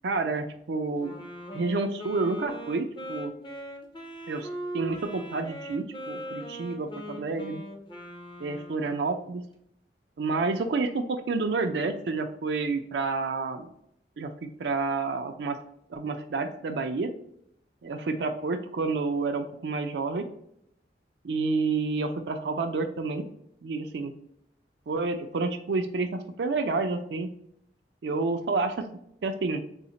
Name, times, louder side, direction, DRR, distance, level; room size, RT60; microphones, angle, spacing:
voice 1, 0.0-1.2 1.5-3.3 4.3-4.5 4.7-7.6 8.4-9.4 10.2-13.7 14.2-15.6 15.9-17.1 17.8-20.3 21.2-23.3 23.6-24.1 24.9-27.3 28.0-28.9 29.2-29.6, right 3 dB, 75° right, 6 dB, 0.4 m, -29 dB
Wind instrument woodwind instrument, 1.0-9.2, equal, 25° left, 0.6 m, -40 dB
3.9 x 2.1 x 3.8 m, 0.72 s
head